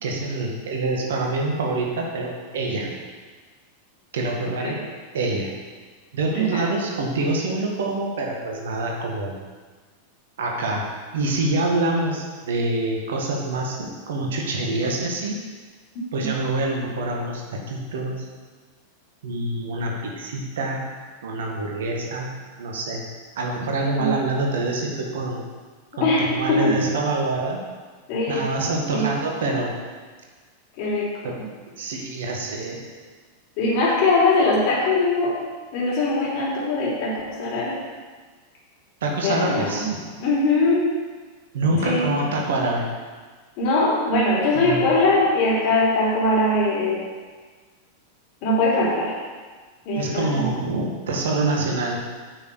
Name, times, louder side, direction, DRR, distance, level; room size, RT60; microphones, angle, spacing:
voice 1, 0.0-2.9 4.1-4.8 5.1-5.5 6.1-9.4 10.4-10.9 11.1-15.4 16.1-18.3 19.2-20.8 21.2-22.3 22.6-23.0 23.4-25.4 26.0-27.6 28.3-29.7 31.2-31.4 31.8-32.8 39.0-40.1 41.5-42.9 44.5-44.9 49.9-52.0, right 2 dB, 60° right, 0 dB, 1.9 m, -26 dB
voice 2, 6.3-6.7 16.2-16.3 24.0-24.1 25.9-26.7 28.1-28.4 28.9-29.1 30.8-31.4 33.6-35.4 35.7-37.8 39.2-39.9 40.2-40.9 41.8-42.1 43.6-47.0 48.4-49.1 49.9-50.5, left 2 dB, 45° left, -5 dB, 3.5 m, -21 dB
8.9 x 6.3 x 6.9 m, 1.5 s
figure-of-eight pair, 90°, 0 cm